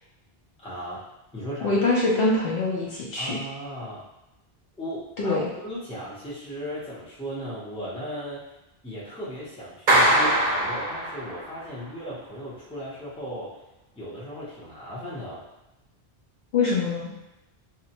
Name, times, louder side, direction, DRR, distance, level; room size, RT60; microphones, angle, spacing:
voice 1, 0.6-1.0 1.3-1.8 3.2-4.0 4.8-8.5 8.8-13.6 14.0-15.4, equal, 5° left, -8 dB, 0.6 m, -36 dB
voice 2, 1.6-3.4 5.2-5.5 16.5-17.1, left 3 dB, 70° left, -4 dB, 0.8 m, -24 dB
Clapping, 9.9-11.6, right 1 dB, 55° right, 0.5 m, -22 dB
2.7 x 2.1 x 2.8 m, 0.94 s
omnidirectional pair, 1.0 m